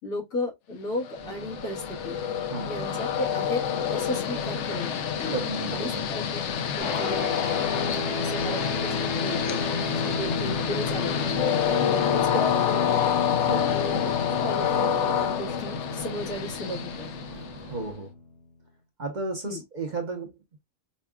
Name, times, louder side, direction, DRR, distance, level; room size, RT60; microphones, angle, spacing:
voice 1, 0.0-2.2 2.6-3.6 3.9-5.0 5.7-7.3 7.9-13.0 13.6-17.1 19.4-19.6, left 1 dB, 85° left, 1.9 m, -35 dB
Train, 1.0-17.8, left 9 dB, 65° left, 0.8 m, -28 dB
sound 1, 1.2-18.0, right 5 dB, 65° right, 0.4 m, -44 dB
voice 2, 5.3-6.1 11.8-12.0 13.4-13.7 17.7-18.1 19.0-20.3, right 3 dB, 40° right, 0.8 m, -33 dB
sound 2, 6.8-18.5, left 3 dB, 50° left, 1.1 m, -33 dB
5.3 x 2.3 x 2.2 m
omnidirectional pair, 1.5 m